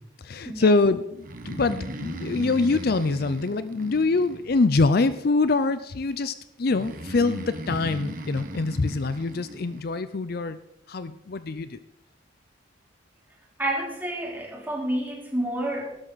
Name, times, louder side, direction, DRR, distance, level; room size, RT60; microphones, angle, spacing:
voice 1, 0.2-10.6 10.9-11.8, left 3 dB, 50° left, 13 dB, 0.5 m, -24 dB
Breathing, 1.2-4.9 6.7-9.8, right 1 dB, 45° right, 1.4 m, -37 dB
voice 2, 13.6-16.0, right 1 dB, 10° right, -2 dB, 3.1 m, -29 dB
16.5 x 12.5 x 4.1 m, 0.85 s
head